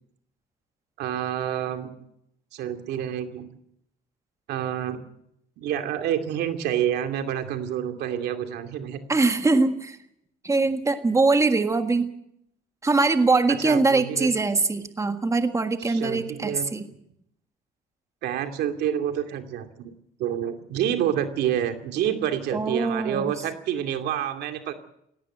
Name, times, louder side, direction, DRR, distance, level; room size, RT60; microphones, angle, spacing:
voice 1, 1.0-1.9 2.5-3.5 4.5-5.0 5.6-9.0 13.5-14.3 15.8-16.7 18.2-19.9 20.2-24.7, right 10 dB, 75° right, 7 dB, 2.5 m, -28 dB
voice 2, 9.1-10.0 10.4-12.1 12.8-16.9 22.5-23.3, right 3 dB, 15° right, 7 dB, 1.7 m, -22 dB
17.5 x 17.0 x 9.2 m, 0.75 s
cardioid pair, 110°, 17 cm